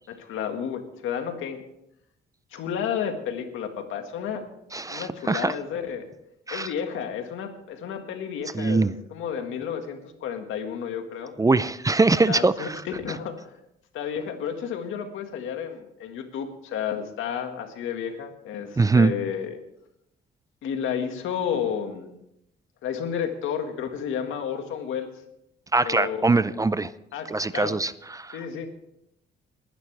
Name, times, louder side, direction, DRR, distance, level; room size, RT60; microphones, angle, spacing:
voice 1, 0.1-1.6 2.5-4.4 4.9-6.1 6.5-11.3 12.2-13.5 13.9-19.6 20.6-22.1 22.8-25.1 25.7-26.2 27.1-27.8 28.3-28.7, left 8 dB, 85° left, 6 dB, 1.9 m, -31 dB
voice 2, 4.7-5.5 6.5-6.7 8.5-8.9 11.4-12.8 18.8-19.1 25.7-26.9 27.3-28.4, right 3 dB, 15° right, 16 dB, 0.5 m, -22 dB
20.5 x 11.0 x 3.4 m, 0.78 s
cardioid pair, 90°, 20 cm